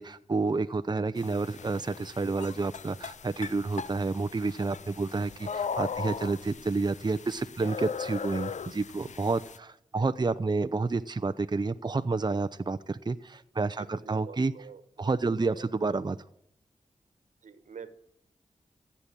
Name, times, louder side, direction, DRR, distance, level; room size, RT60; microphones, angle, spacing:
voice 1, 0.0-14.5 15.0-16.2, right 3 dB, 35° right, 10 dB, 0.7 m, -30 dB
sound 1, 1.2-9.6, left 6 dB, 70° left, 0.6 m, -39 dB
voice 2, 13.8-15.7 17.4-17.9, right 6 dB, 85° right, 11 dB, 1.4 m, -48 dB
15.5 x 8.6 x 9.0 m, 0.73 s
cardioid pair, 50°, 13 cm